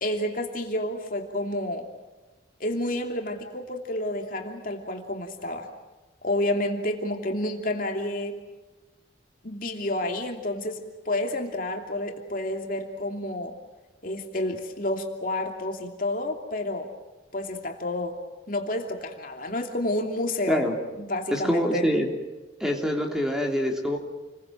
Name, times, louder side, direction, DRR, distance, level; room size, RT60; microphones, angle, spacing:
voice 1, 0.0-1.9 2.6-5.7 6.2-8.4 9.4-13.5 14.0-16.9 17.3-18.2 18.5-20.6 20.9-21.8, left 1 dB, 50° left, 3 dB, 2.9 m, -30 dB
voice 2, 21.3-22.1 22.6-24.0, equal, 5° right, 1 dB, 3.4 m, -25 dB
29.5 x 22.0 x 7.7 m, 1.2 s
head